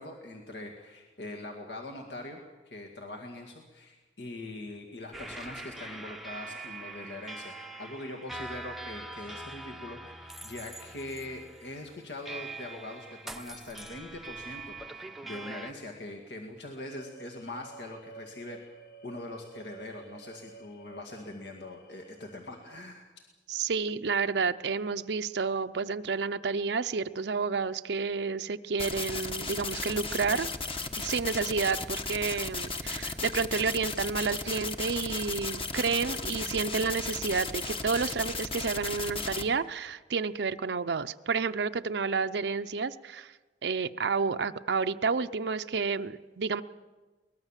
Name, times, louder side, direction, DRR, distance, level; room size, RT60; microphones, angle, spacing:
voice 1, 0.0-7.5 7.8-18.6 19.0-23.1, left 2 dB, 75° left, 1 dB, 2.1 m, -42 dB
sound 1, 5.1-15.7, right 2 dB, ahead, 0.7 m, -43 dB
sound 2, 16.9-22.9, right 5 dB, 60° left, 1.6 m, -52 dB
voice 2, 23.5-30.5 31.0-43.3 43.6-46.6, right 5 dB, 70° right, 9 dB, 0.6 m, -30 dB
sound 3, 28.8-39.4, left 3 dB, 30° left, 1.2 m, -35 dB
23.0 x 20.0 x 7.4 m, 1.3 s
head